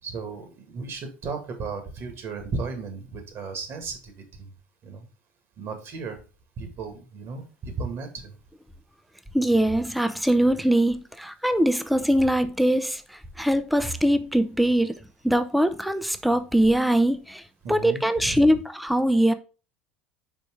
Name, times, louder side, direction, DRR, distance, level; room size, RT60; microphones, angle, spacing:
voice 1, 0.0-4.5 4.8-5.1 5.6-6.2 6.6-8.4 17.6-18.5, right 4 dB, 45° right, 2.0 m, -35 dB
voice 2, 9.3-15.0 15.2-17.4 17.7-19.3, right 1 dB, ahead, 0.6 m, -22 dB
5.2 x 4.5 x 4.5 m
figure-of-eight pair, 70°, 6 cm